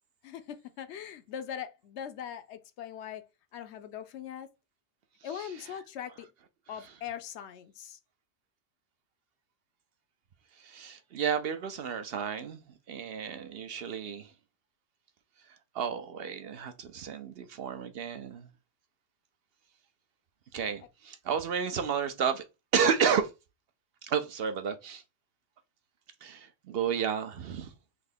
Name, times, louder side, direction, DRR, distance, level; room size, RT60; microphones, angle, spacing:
voice 1, 0.2-3.2 3.5-4.5 5.2-6.3 6.7-8.0, left 9 dB, 75° left, 0.9 m, -41 dB
voice 2, 5.2-5.8 6.7-7.0 10.6-12.6 12.9-14.3 15.7-18.5 20.5-22.4 22.7-23.3 24.0-25.0 26.2-27.7, right 7 dB, 60° right, 0.8 m, -32 dB
3.5 x 2.7 x 3.9 m
omnidirectional pair, 1.2 m